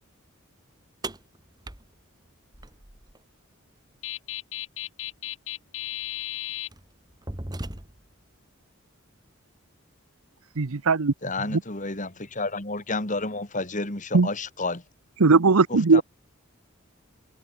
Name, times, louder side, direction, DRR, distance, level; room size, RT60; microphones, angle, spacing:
sound 1, 1.0-3.2 5.1-5.2 6.0-6.2 6.7-8.2, right 1 dB, 20° right, 1.6 m, -38 dB
voice 1, 4.0-6.7, left 13 dB, 60° left, 6.4 m, -35 dB
voice 2, 10.6-11.1 11.5-11.6 14.1-14.3 15.2-16.0, right 4 dB, 85° right, 0.9 m, -19 dB
voice 3, 11.2-14.8 15.7-16.0, left 3 dB, 35° left, 3.3 m, -30 dB
head